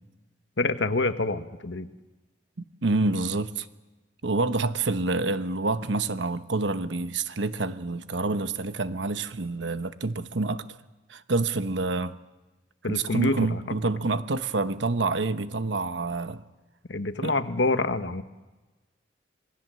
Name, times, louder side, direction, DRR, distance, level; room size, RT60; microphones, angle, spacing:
voice 1, 0.6-1.9 12.8-13.6 16.9-18.2, left 2 dB, 80° left, 1.3 m, -26 dB
voice 2, 2.8-3.7 4.2-10.6 11.1-12.2 12.9-16.4 17.2-17.3, right 3 dB, 90° right, 1.1 m, -27 dB
26.5 x 19.0 x 7.7 m
head